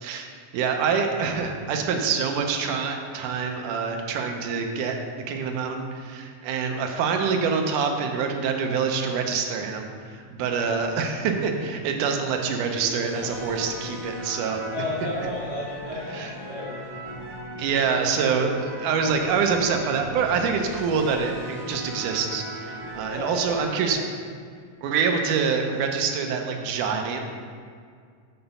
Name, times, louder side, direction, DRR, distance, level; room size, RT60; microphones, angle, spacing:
voice 1, 0.0-5.0 5.3-14.6 16.1-16.3 17.6-24.0 24.8-27.3, right 5 dB, 75° right, 4 dB, 2.1 m, -26 dB
sound 1, 10.4-11.5 12.3-23.9, equal, 35° right, 1.4 m, -38 dB
voice 2, 14.7-16.8 23.1-23.6 23.9-24.0, left 2 dB, 55° left, -6 dB, 2.8 m, -33 dB
6.9 x 5.9 x 5.3 m, 2.1 s
omnidirectional pair, 4.0 m